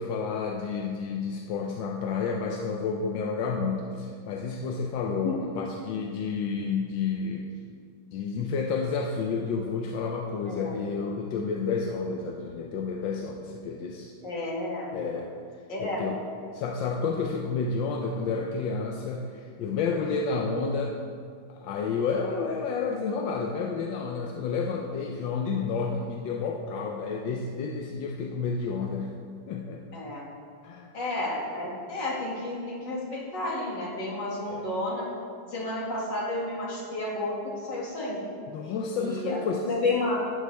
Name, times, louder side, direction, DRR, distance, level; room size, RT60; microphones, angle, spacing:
voice 1, 0.0-7.5 8.1-14.1 14.9-15.3 15.8-16.2 16.5-20.9 21.5-29.2 29.5-29.9 30.6-30.9 34.4-34.7 38.5-39.7, left 5 dB, 90° left, 1 dB, 1.4 m, -30 dB
voice 2, 14.2-14.9 15.7-16.1 29.9-30.2 30.9-35.0 35.5-37.3 37.7-38.3 39.0-40.2, left 2 dB, 70° left, -4 dB, 2.7 m, -31 dB
12.5 x 8.9 x 3.4 m, 2.2 s
omnidirectional pair, 2.0 m